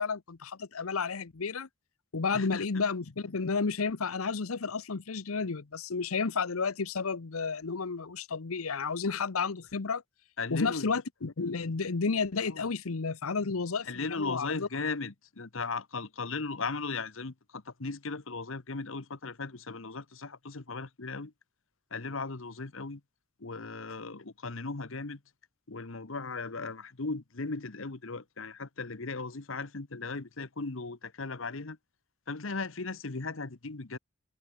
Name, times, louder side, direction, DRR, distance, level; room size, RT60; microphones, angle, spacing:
voice 1, 0.0-1.7 2.1-10.0 10.5-14.7, left 4 dB, 85° left, 0.9 m, -32 dB
voice 2, 2.3-2.6 10.4-10.9 12.5-12.7 13.9-21.3 21.9-23.0 23.4-25.2 25.7-31.8 32.3-34.0, left 4 dB, 65° left, 1.2 m, -37 dB
open air
head